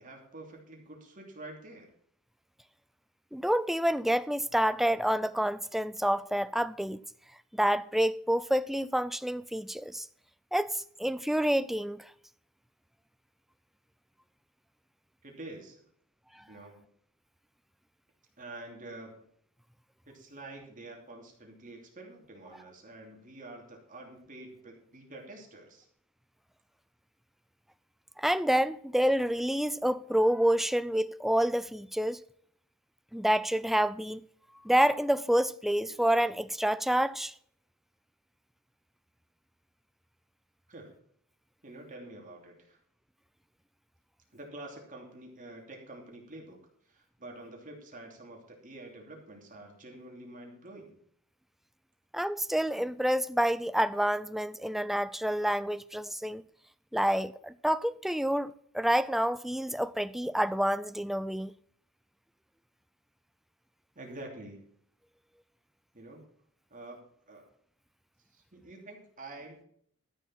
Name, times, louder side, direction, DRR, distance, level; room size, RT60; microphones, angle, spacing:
voice 1, 0.0-1.9 15.2-15.8 16.5-16.9 18.4-19.1 20.1-25.9 40.7-40.9 41.6-42.8 44.3-46.6 46.9-50.9 63.9-64.6 65.9-66.2 66.7-67.0 67.3-67.4 68.5-69.6, right 2 dB, 35° right, 2.9 m, -47 dB
voice 2, 3.3-7.0 7.5-10.1 10.5-12.1 28.2-32.2 33.1-34.2 34.6-37.3 52.1-56.4 56.9-61.5, equal, ahead, 0.3 m, -28 dB
13.0 x 6.9 x 5.8 m
head